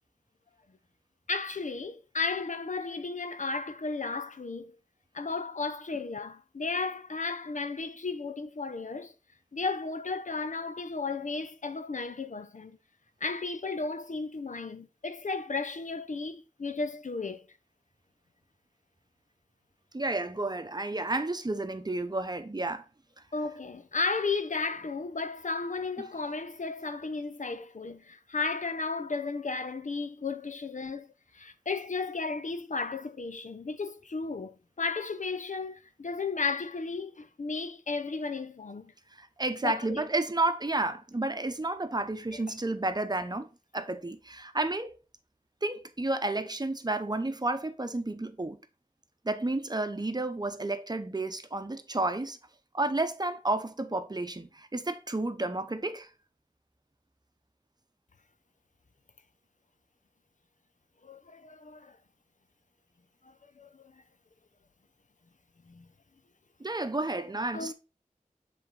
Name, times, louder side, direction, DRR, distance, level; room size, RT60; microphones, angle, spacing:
voice 1, 1.3-4.8 5.1-9.1 9.5-12.8 13.2-17.5 23.3-31.1 31.3-38.9 39.6-40.0 61.0-62.0 63.2-63.8 65.7-65.9 67.5-67.7, left 4 dB, 60° left, 0.6 m, -34 dB
voice 2, 19.9-22.8 26.0-26.1 39.2-45.0 45.6-48.6 49.2-52.4 52.7-56.1 66.6-67.7, right 2 dB, 25° right, 0.8 m, -31 dB
7.5 x 3.5 x 3.8 m
wide cardioid pair, 50°, 15 cm